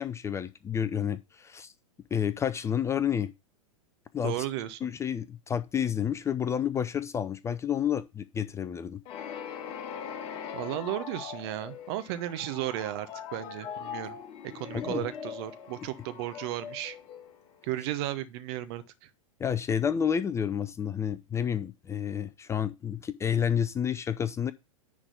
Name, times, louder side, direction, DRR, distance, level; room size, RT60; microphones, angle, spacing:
voice 1, 0.0-1.7 2.1-3.3 4.1-4.4 4.8-9.0 14.7-15.0 19.4-24.5, left 8 dB, 15° left, 0.5 m, -30 dB
voice 2, 4.2-4.9 10.5-14.2 14.4-17.0 17.6-19.1, right 14 dB, 45° right, 1.0 m, -34 dB
sound 1, 9.1-17.8, left 7 dB, 35° left, 1.8 m, -41 dB
10.0 x 3.8 x 6.6 m
figure-of-eight pair, 100°, 18 cm